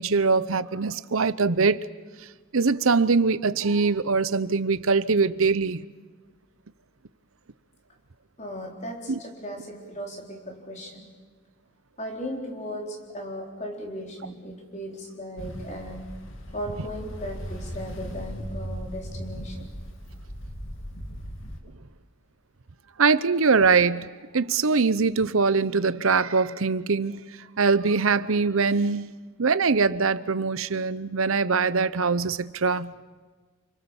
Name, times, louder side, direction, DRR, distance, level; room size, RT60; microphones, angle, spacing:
voice 1, 0.0-1.9 2.5-5.9 9.1-9.2 23.0-24.1 24.3-27.2 27.6-32.9, right 4 dB, 70° right, 16 dB, 0.8 m, -22 dB
voice 2, 8.4-11.1 12.0-16.1 16.5-19.6, equal, 30° left, 1 dB, 4.3 m, -37 dB
Ocean, 15.4-21.6, equal, 60° left, 2.7 m, -37 dB
28.5 x 25.5 x 7.2 m, 1.4 s
head